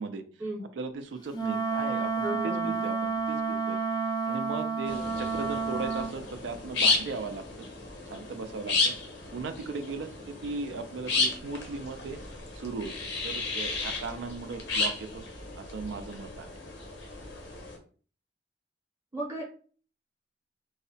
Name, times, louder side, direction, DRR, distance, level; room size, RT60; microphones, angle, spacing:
voice 1, 0.7-3.8 4.3-7.7 8.1-8.9 9.3-12.2 12.5-15.2 15.6-16.5, right 4 dB, 85° right, 8 dB, 0.4 m, -37 dB
Wind instrument woodwind instrument, 1.3-6.1, right 4 dB, 25° left, 0.4 m, -30 dB
voice 2, 2.2-2.7 19.1-19.4, right 1 dB, 20° right, -4 dB, 0.7 m, -34 dB
sound 1, 4.9-17.8, left 3 dB, 85° left, 0.7 m, -33 dB
2.6 x 2.1 x 2.6 m, 0.41 s
head